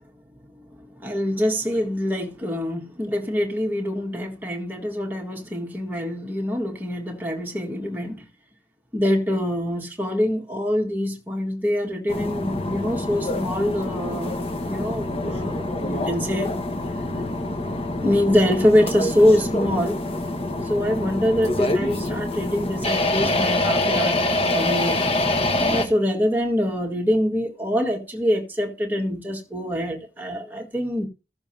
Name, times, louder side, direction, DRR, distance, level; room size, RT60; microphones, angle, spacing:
voice 1, 1.0-8.2 8.9-16.5 18.0-20.0 20.6-25.0 25.6-31.1, left 1 dB, 10° right, 1.7 m, -24 dB
sound 1, 12.1-25.9, left 2 dB, 35° left, 1.1 m, -25 dB
15.0 x 6.9 x 2.8 m
head